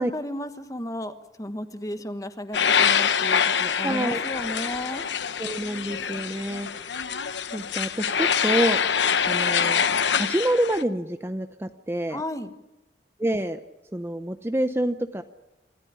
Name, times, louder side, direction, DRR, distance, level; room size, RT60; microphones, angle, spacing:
voice 1, 0.0-5.0 12.1-12.5, left 1 dB, 20° left, 9 dB, 1.3 m, -34 dB
sound 1, 2.5-10.8, left 7 dB, 80° left, 0.9 m, -25 dB
voice 2, 3.8-4.2 5.4-7.0 7.5-8.8 9.3-9.8 10.1-12.2 13.2-13.6 13.9-15.2, right 1 dB, 15° right, 9 dB, 0.7 m, -27 dB
27.0 x 14.0 x 9.9 m, 0.98 s
head